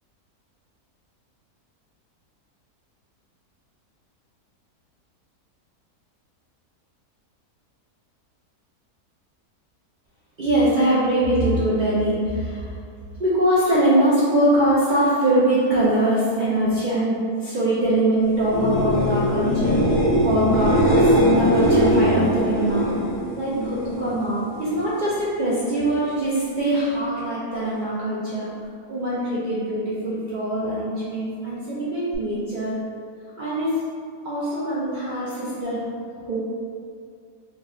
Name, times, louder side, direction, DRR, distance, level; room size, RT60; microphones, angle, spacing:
voice 1, 10.4-12.7 13.2-19.8 20.2-22.9 23.4-28.5 28.9-32.8 33.4-33.8 34.2-35.8 36.2-36.4, right 1 dB, 60° right, -10 dB, 0.5 m, -22 dB
sound 1, 18.4-24.2 24.5-25.1 32.1-32.2, equal, 65° left, 1.2 m, -20 dB
3.8 x 2.1 x 3.6 m, 2.2 s
omnidirectional pair, 1.6 m